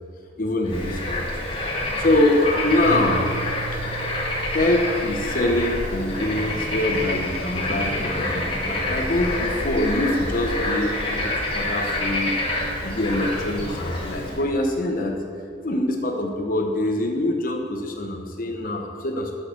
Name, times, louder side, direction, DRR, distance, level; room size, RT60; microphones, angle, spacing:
voice 1, 0.4-1.4 2.0-3.3 3.7-3.8 4.5-12.3 12.8-15.2 15.6-19.3, left 1 dB, 45° left, 2 dB, 0.9 m, -24 dB
Bird / Frog, 0.7-14.4, left 1 dB, 30° left, 1.8 m, -27 dB
Piano, 2.9-8.5, right 5 dB, 65° right, 0.4 m, -38 dB
10.5 x 6.3 x 6.7 m, 2.3 s
head